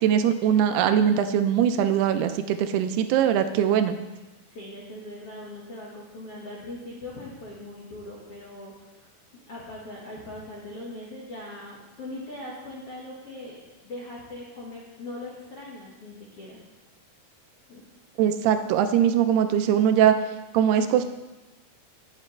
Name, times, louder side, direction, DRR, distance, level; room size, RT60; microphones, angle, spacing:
voice 1, 0.0-4.0 18.2-20.2 20.5-21.1, right 9 dB, 80° right, 9 dB, 2.5 m, -21 dB
voice 2, 4.5-9.1 9.5-16.6 17.7-17.8, left 1 dB, 55° left, -5 dB, 1.7 m, -40 dB
17.0 x 7.5 x 3.2 m, 1.1 s
omnidirectional pair, 4.7 m